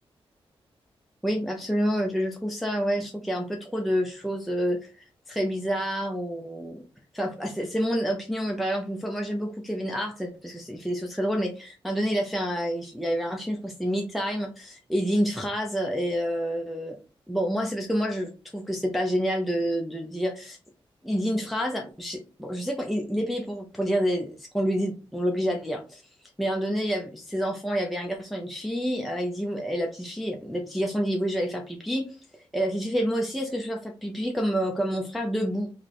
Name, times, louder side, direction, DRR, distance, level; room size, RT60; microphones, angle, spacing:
voice 1, 1.2-6.8 7.1-17.0 17.3-20.6 21.0-26.0 26.4-35.7, equal, ahead, 1 dB, 0.6 m, -28 dB
3.2 x 2.2 x 4.0 m, 0.34 s
cardioid pair, 75°, 10 cm